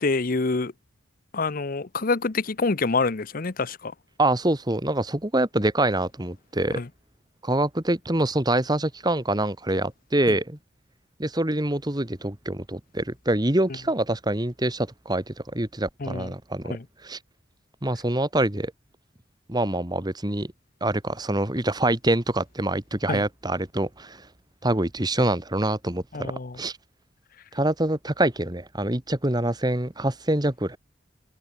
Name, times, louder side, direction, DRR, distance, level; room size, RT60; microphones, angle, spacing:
voice 1, 0.0-0.7 1.3-3.9 6.8-6.9 10.3-10.4 16.0-16.3 16.6-16.8 23.1-23.2 26.1-26.6, left 3 dB, 45° left, 0.8 m, -26 dB
voice 2, 4.2-6.8 7.4-10.6 11.2-16.8 17.0-17.2 17.8-18.7 19.5-20.5 20.8-24.2 24.6-26.3 26.6-26.8 27.5-30.8, right 1 dB, 20° right, 1.7 m, -25 dB
head